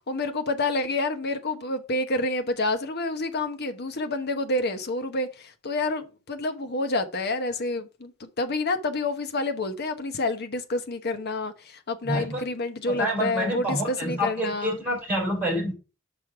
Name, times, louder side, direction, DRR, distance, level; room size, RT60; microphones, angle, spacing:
voice 1, 0.1-14.8, left 2 dB, 50° left, 0.9 m, -28 dB
voice 2, 12.0-12.4 12.9-15.7, equal, 10° right, 3.9 m, -27 dB
6.3 x 5.3 x 4.7 m
head